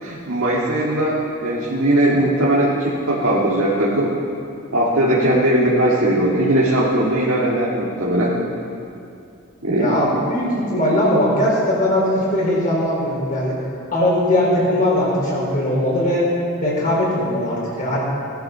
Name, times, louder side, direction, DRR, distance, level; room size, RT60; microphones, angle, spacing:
voice 1, 0.0-4.2 4.7-8.3 9.6-10.0, right 1 dB, 75° right, -6 dB, 2.0 m, -19 dB
voice 2, 9.7-13.6 13.9-16.3 16.6-18.0, left 1 dB, 40° left, -4 dB, 4.5 m, -19 dB
17.5 x 11.5 x 5.7 m, 2.5 s
head